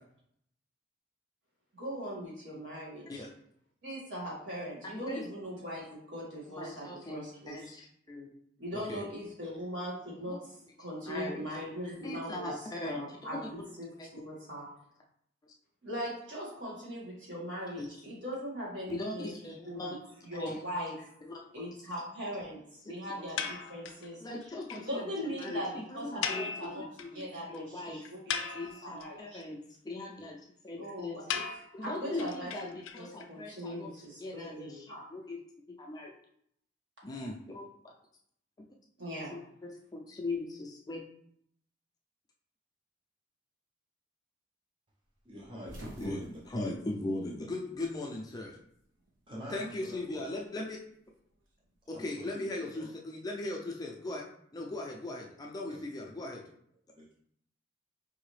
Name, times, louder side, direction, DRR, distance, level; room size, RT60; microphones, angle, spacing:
voice 1, 1.7-3.2 3.8-7.7 8.6-10.4 10.8-13.9 14.2-14.7 15.8-19.8 20.2-21.1 21.5-22.6 22.9-24.2 24.8-28.6 28.8-29.4 30.8-31.4 31.8-32.5 33.0-35.0 39.0-39.3, equal, 65° right, -5 dB, 1.7 m, -40 dB
voice 2, 4.9-5.3 6.6-8.4 8.9-9.0 10.3-10.4 11.0-11.4 12.0-13.5 14.0-14.3 17.8-17.9 18.9-20.0 20.4-20.5 21.2-21.7 22.8-23.5 24.2-26.7 27.0-28.1 28.5-29.6 29.8-31.2 31.7-33.9 34.2-35.4 35.7-36.1 37.0-37.9 39.3-41.0 46.0-46.2 46.5-48.6 49.5-50.8 51.9-54.2 54.5-56.4, left 2 dB, 20° left, -1 dB, 0.4 m, -39 dB
sound 1, 23.4-24.1 24.4-24.5 24.7-24.8 25.1-25.2 25.4-25.5 26.2-27.2 27.5-27.6 28.0-29.0 31.3-33.3, left 7 dB, 85° left, 0.4 m, -37 dB
voice 3, 45.2-46.3 49.3-50.2 50.6-50.7 51.8-52.9 55.6-56.1 57.0-57.1, equal, 25° right, -5 dB, 0.6 m, -46 dB
sound 2, 45.3-47.9 48.2-49.2 50.4-51.9, right 1 dB, 80° right, 1.0 m, -50 dB
4.8 x 2.7 x 3.2 m, 0.69 s
head